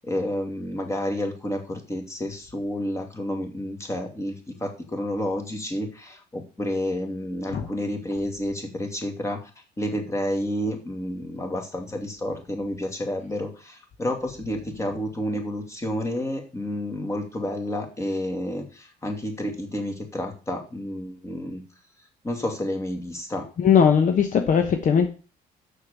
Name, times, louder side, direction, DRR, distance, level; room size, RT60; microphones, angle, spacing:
voice 1, 0.0-9.5 9.8-21.6 22.2-23.5, left 1 dB, 15° left, 2.5 m, -30 dB
voice 2, 23.6-25.1, left 7 dB, 50° left, 1.1 m, -19 dB
6.7 x 6.5 x 7.0 m
cardioid pair, 110°, 17 cm